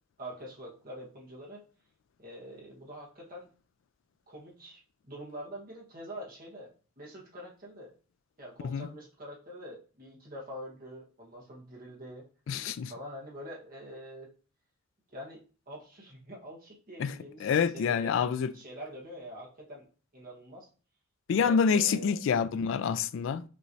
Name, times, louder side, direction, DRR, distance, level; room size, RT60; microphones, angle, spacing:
voice 1, 0.2-1.6 2.2-3.5 4.3-4.8 5.1-6.7 7.0-7.9 8.4-12.3 12.9-14.3 15.1-15.4 15.7-18.2 18.5-19.9 20.1-20.7 21.4-22.2, equal, 45° right, 1.3 m, -45 dB
voice 2, 12.5-12.9 17.0-17.1 17.4-18.5 21.3-23.4, left 6 dB, 65° left, 0.3 m, -27 dB
5.6 x 3.1 x 2.7 m
head